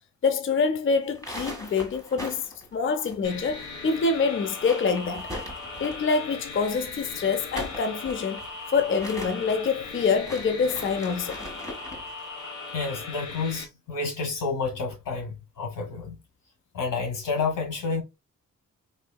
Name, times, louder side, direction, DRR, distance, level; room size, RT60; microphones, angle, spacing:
voice 1, 0.2-5.3 5.8-8.4 8.7-11.4, left 5 dB, 40° left, 0.5 m, -26 dB
sound 1, 1.0-3.7 3.9-4.0 4.4-6.2 7.3-12.1, equal, 10° left, 1.5 m, -40 dB
sound 2, 3.2-13.6, left 4 dB, 65° left, 1.3 m, -39 dB
voice 2, 12.7-16.2 16.7-18.0, left 4 dB, 85° left, 1.4 m, -30 dB
4.2 x 2.7 x 2.2 m
cardioid pair, 75°, 32 cm